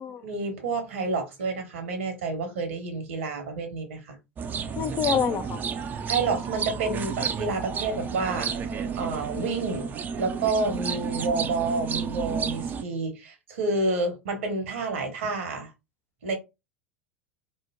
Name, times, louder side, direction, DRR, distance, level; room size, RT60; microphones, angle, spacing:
voice 1, 0.2-4.2 6.1-8.6 8.9-15.7 16.2-16.3, right 3 dB, 65° right, 1.2 m, -29 dB
sound 1, 4.4-12.8, right 6 dB, 25° right, 0.5 m, -31 dB
voice 2, 4.8-5.6, left 8 dB, 30° left, 0.4 m, -27 dB
3.1 x 2.1 x 3.5 m
figure-of-eight pair, 80°, 7 cm